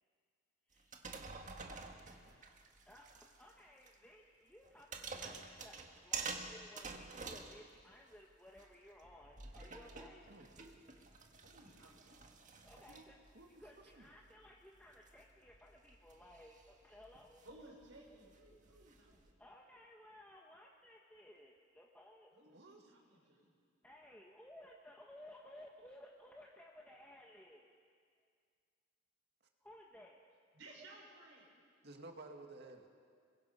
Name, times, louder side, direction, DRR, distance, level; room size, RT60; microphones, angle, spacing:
voice 1, 0.7-3.0 3.4-10.2 12.6-13.2 13.6-17.4 19.4-22.3 23.8-27.7 29.6-30.2, left 1 dB, 5° left, -2 dB, 1.4 m, -59 dB
sound 1, 0.8-3.5 3.9-4.0 4.6-8.2 8.6-19.3, right 4 dB, 40° right, 1.7 m, -50 dB
voice 2, 11.4-12.2 17.4-19.4 22.3-23.5 30.5-31.5, right 2 dB, 85° right, -1 dB, 5.6 m, -59 dB
voice 3, 22.5-22.9 31.8-32.9, right 2 dB, 60° right, 3 dB, 2.2 m, -54 dB
27.0 x 23.0 x 5.6 m, 2.1 s
head